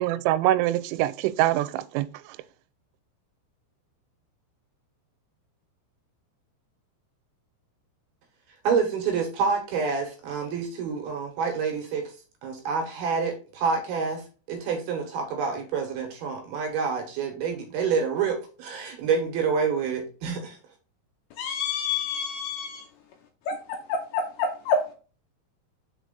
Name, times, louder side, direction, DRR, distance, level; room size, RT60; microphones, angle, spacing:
voice 1, 0.0-2.1, right 14 dB, 90° right, 3.1 m, -24 dB
voice 2, 8.6-12.0 12.4-14.2 14.5-20.6, right 5 dB, 65° right, 2.7 m, -27 dB
voice 3, 21.4-22.8 23.5-24.8, left 4 dB, 80° left, 2.6 m, -28 dB
6.6 x 4.7 x 3.7 m
omnidirectional pair, 5.5 m